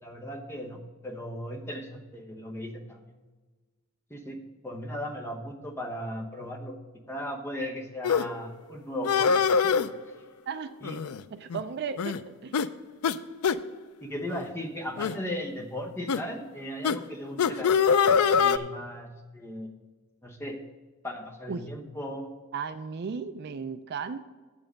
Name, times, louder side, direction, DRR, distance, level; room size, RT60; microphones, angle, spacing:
voice 1, 0.0-3.1 4.1-4.4 4.6-6.8 7.1-9.4 9.7-9.8 10.8-11.0 14.0-19.1 19.3-19.7 20.2-20.6 21.0-22.4, equal, 10° left, 2 dB, 1.0 m, -37 dB
sound 1, 8.0-8.2 9.0-9.9 10.8-11.2 11.5-11.6 12.0-12.2 12.5-12.7 13.0-13.2 13.4-13.6 14.3-14.5 15.0-15.2 16.1-16.2 16.8-17.0 17.4-18.6, left 6 dB, 75° left, 0.4 m, -23 dB
voice 2, 11.3-12.6 21.5-21.7 22.5-24.2, right 6 dB, 45° right, 12 dB, 0.3 m, -35 dB
7.7 x 7.3 x 6.4 m, 1.3 s
head